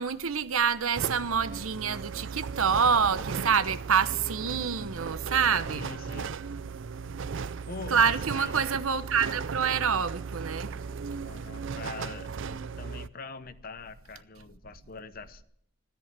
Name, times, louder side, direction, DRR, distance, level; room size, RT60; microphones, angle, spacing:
voice 1, 0.0-5.8 7.9-10.7, right 6 dB, 75° right, 0.9 m, -27 dB
sound 1, 0.9-13.1, right 5 dB, 60° right, 0.5 m, -36 dB
voice 2, 5.7-6.3 7.7-8.6 11.2-12.3 12.8-15.4, left 4 dB, 45° left, 0.8 m, -43 dB
14.0 x 13.0 x 7.5 m
head